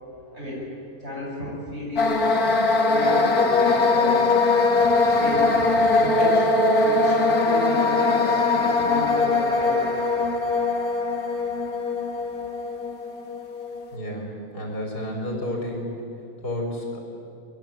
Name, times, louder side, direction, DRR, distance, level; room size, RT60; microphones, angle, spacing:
voice 1, 1.0-2.1 2.9-5.5 5.9-9.9, equal, 40° right, -3 dB, 7.9 m, -33 dB
sound 1, 2.0-13.8, left 3 dB, 70° left, 2.3 m, -21 dB
voice 2, 13.9-15.9 16.4-17.0, left 1 dB, 85° left, -1 dB, 5.1 m, -31 dB
25.0 x 21.5 x 9.0 m, 2.8 s
omnidirectional pair, 1.7 m